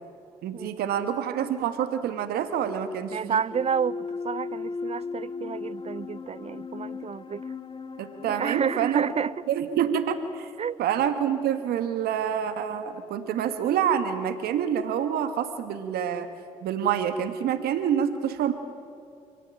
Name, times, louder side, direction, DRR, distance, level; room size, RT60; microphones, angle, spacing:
voice 1, 0.4-3.4 8.0-9.0 9.5-10.5 10.8-16.3 16.6-18.5, right 8 dB, 75° right, 1.7 m, -27 dB
voice 2, 3.1-7.4 8.3-9.3 10.6-10.8, right 7 dB, 40° right, 0.5 m, -30 dB
sound 1, 3.5-8.9, left 4 dB, 30° left, 2.4 m, -36 dB
28.0 x 18.0 x 9.1 m
hypercardioid pair, 50°, 16 cm